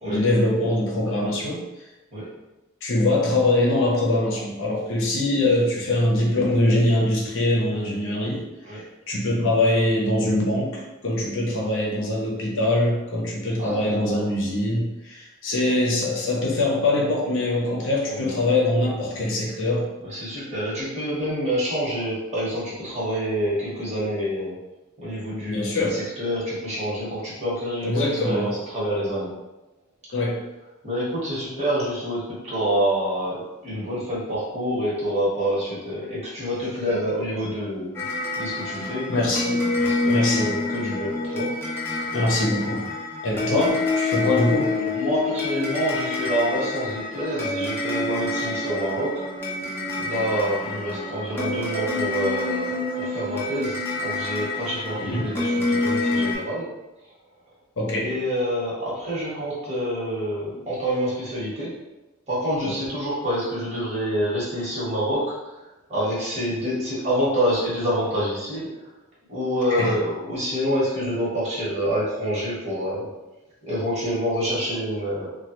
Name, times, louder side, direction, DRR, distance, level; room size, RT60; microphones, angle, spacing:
voice 1, 0.1-1.6 2.8-19.9 25.5-26.0 27.8-28.5 30.1-30.4 38.8-39.7 40.1-40.5 42.1-42.9 43.2-44.7 55.0-55.3 57.8-58.1 60.5-60.6 69.7-69.9, left 1 dB, 60° left, -2 dB, 0.7 m, -23 dB
voice 2, 13.6-14.2 18.1-18.4 20.1-24.5 25.0-29.3 30.8-38.0 38.3-39.0 39.7-41.5 41.9-42.1 44.7-49.2 50.0-56.7 58.0-61.7 62.3-65.2 65.9-68.7 69.3-73.1 73.6-75.3, equal, 30° right, -8 dB, 1.2 m, -27 dB
sound 1, 37.9-56.3, left 3 dB, 10° left, 0.6 m, -27 dB
3.1 x 2.3 x 2.9 m, 1.0 s
head